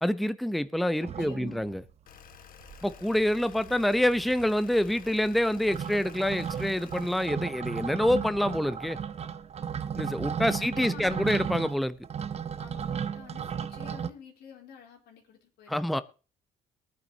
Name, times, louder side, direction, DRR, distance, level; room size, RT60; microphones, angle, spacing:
voice 1, 0.0-1.8 2.8-9.0 10.0-12.0 15.7-16.0, left 1 dB, ahead, 0.7 m, -27 dB
sound 1, 1.0-1.9 2.3-2.4 2.6-3.3 3.5-14.1, right 7 dB, 40° right, 0.8 m, -35 dB
voice 2, 1.2-1.7 10.6-11.4 12.6-16.0, left 6 dB, 75° left, 3.5 m, -49 dB
sound 2, 2.1-7.3, left 9 dB, 60° left, 1.4 m, -51 dB
22.5 x 9.6 x 2.8 m
cardioid pair, 110°, 17 cm